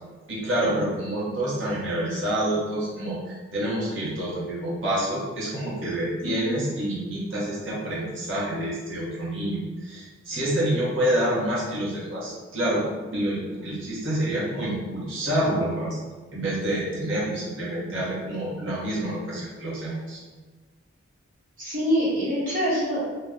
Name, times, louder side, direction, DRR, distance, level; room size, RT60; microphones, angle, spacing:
voice 1, 0.3-12.8 13.1-16.0 16.3-20.2, right 1 dB, 75° right, -6 dB, 1.0 m, -27 dB
voice 2, 6.2-6.6 21.6-23.1, equal, 40° right, -8 dB, 1.0 m, -25 dB
2.8 x 2.2 x 3.6 m, 1.3 s
head